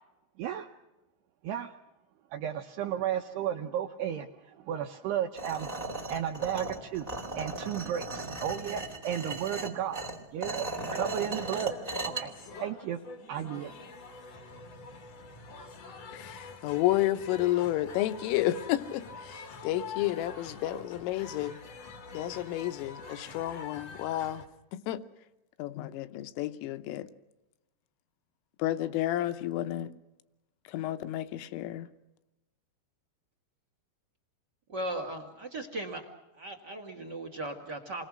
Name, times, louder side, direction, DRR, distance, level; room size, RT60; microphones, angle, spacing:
voice 1, 0.4-0.7 1.4-1.7 2.3-5.7 6.0-11.8 12.0-13.0 13.3-13.9, right 10 dB, 75° right, 2.5 m, -34 dB
sound 1, 5.4-12.2, right 2 dB, 25° right, 0.8 m, -37 dB
sound 2, 10.7-24.5, left 4 dB, 60° left, 1.6 m, -46 dB
voice 2, 16.1-21.6 22.1-24.4 24.7-25.0 25.6-27.1 28.6-29.9 30.7-31.9, left 14 dB, 85° left, 3.6 m, -31 dB
voice 3, 34.7-36.0 36.3-38.1, right 1 dB, 45° right, 1.3 m, -37 dB
29.0 x 21.5 x 6.3 m
omnidirectional pair, 5.8 m